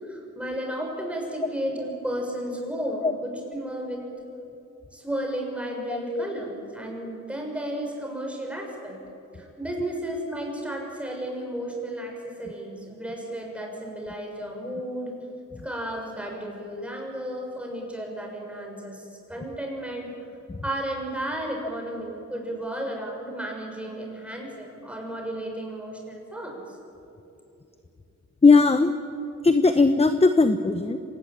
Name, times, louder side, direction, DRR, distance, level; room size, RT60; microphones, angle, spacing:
voice 1, 0.0-4.1 4.9-9.0 9.3-15.2 15.6-20.1 20.6-26.7, right 1 dB, 5° right, 0 dB, 6.8 m, -33 dB
voice 2, 5.9-6.3 20.5-20.6 28.4-28.9 29.4-31.0, left 4 dB, 20° left, 9 dB, 0.9 m, -19 dB
26.0 x 19.0 x 9.0 m, 2.8 s
wide cardioid pair, 100°, 31 cm